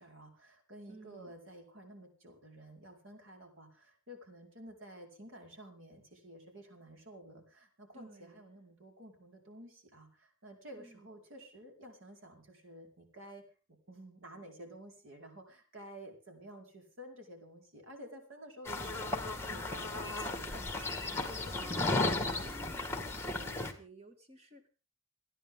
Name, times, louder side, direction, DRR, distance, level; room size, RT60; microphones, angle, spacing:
voice 1, 0.0-13.4 13.9-22.5, right 1 dB, 75° right, 3 dB, 4.9 m, -52 dB
voice 2, 0.9-1.4 7.9-8.4 10.8-11.1 21.6-24.7, equal, 30° right, 6 dB, 2.3 m, -54 dB
sound 1, 18.7-23.7, left 2 dB, 10° left, 1.8 m, -35 dB
28.0 x 10.0 x 3.8 m, 0.35 s
head